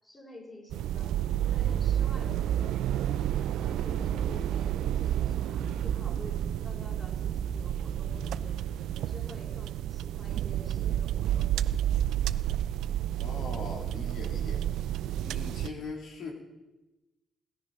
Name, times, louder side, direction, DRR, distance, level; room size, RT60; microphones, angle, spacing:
voice 1, 0.0-1.1 1.4-2.8 3.1-8.6 9.0-11.5, left 1 dB, 20° left, -2 dB, 5.8 m, -49 dB
sound 1, 0.7-15.7, right 11 dB, 85° right, 0.4 m, -30 dB
sound 2, 1.1-9.6, right 6 dB, 55° right, 0.8 m, -40 dB
voice 2, 13.2-14.6 15.2-16.3, left 3 dB, 75° left, 0 dB, 3.2 m, -40 dB
18.5 x 10.5 x 5.4 m, 1.1 s
cardioid pair, 75°, 0 cm